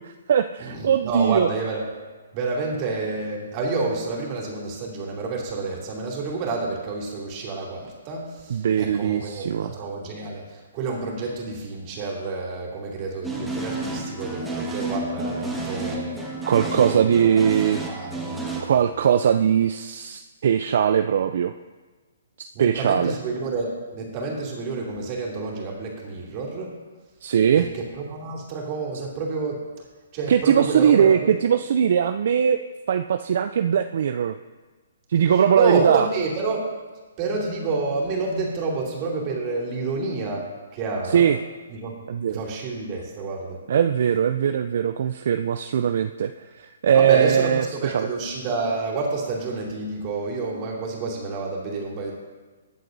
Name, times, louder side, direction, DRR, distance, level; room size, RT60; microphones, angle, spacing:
voice 1, 0.0-1.5 8.5-9.7 16.5-17.8 18.6-21.5 22.4-23.1 27.2-27.6 30.3-32.6 32.9-34.3 35.1-36.1 41.1-41.4 42.1-42.4 43.7-46.3 46.6-47.6 47.9-48.1, right 8 dB, 60° right, 8 dB, 0.4 m, -20 dB
voice 2, 0.6-1.9 2.3-16.2 16.6-17.3 17.6-18.6 22.5-26.7 27.6-29.6 30.1-31.3 35.5-36.6 37.2-40.5 40.7-41.3 41.7-41.9 42.3-43.6 46.9-52.1, right 3 dB, 35° right, -2 dB, 2.8 m, -29 dB
sound 1, 13.2-18.6, right 2 dB, 5° right, 1.6 m, -31 dB
20.0 x 7.6 x 2.7 m, 1.3 s
hypercardioid pair, 135°, 0 cm